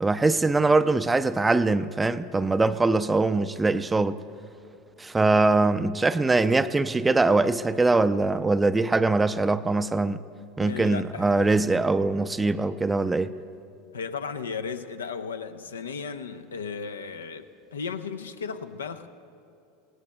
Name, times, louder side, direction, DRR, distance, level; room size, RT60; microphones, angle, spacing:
voice 1, 0.0-4.2 5.0-10.2 10.6-13.4, right 3 dB, 15° right, 0.4 m, -22 dB
voice 2, 10.6-11.5 13.9-19.1, left 5 dB, 80° left, 0.5 m, -35 dB
21.5 x 17.5 x 2.2 m
figure-of-eight pair, 80°, 0 cm